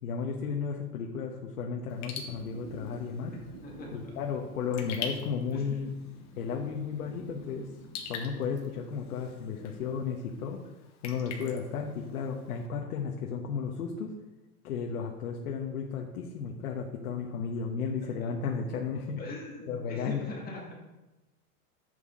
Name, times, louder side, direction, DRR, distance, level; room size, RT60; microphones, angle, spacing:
voice 1, 0.0-3.3 3.9-5.9 6.4-7.7 8.1-10.6 11.0-14.1 14.6-19.2 19.7-20.3, left 6 dB, 75° left, 1 dB, 1.4 m, -34 dB
Raindrop / Drip, 1.9-12.7, left 6 dB, 35° left, 1.8 m, -46 dB
sound 1, 2.2-10.0, right 4 dB, 85° right, 3.2 m, -51 dB
voice 2, 3.6-4.0 5.5-5.9 19.2-20.8, left 3 dB, 20° left, -3 dB, 2.2 m, -41 dB
11.0 x 8.4 x 3.8 m, 1.0 s
hypercardioid pair, 135°, 45 cm